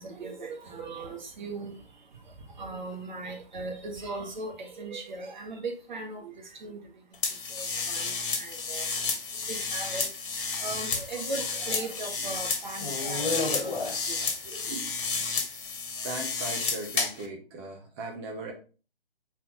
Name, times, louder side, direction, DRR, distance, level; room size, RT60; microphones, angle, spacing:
voice 1, 0.0-15.3, right 3 dB, 50° right, 1.6 m, -39 dB
sound 1, 7.2-17.3, left 4 dB, 60° left, 1.6 m, -31 dB
voice 2, 16.0-18.5, right 2 dB, 15° right, 0.9 m, -38 dB
5.6 x 4.5 x 3.8 m
hypercardioid pair, 155°, 29 cm